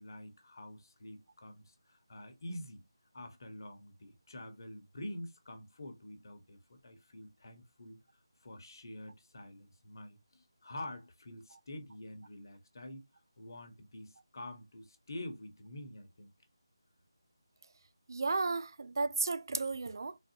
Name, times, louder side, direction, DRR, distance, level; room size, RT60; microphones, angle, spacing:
voice 1, 0.0-2.8 3.1-8.0 8.4-13.0 13.4-16.3, left 1 dB, 50° left, 1.1 m, -47 dB
voice 2, 18.1-20.2, right 3 dB, 50° right, 0.4 m, -33 dB
3.9 x 2.6 x 2.8 m
figure-of-eight pair, 165°, 3 cm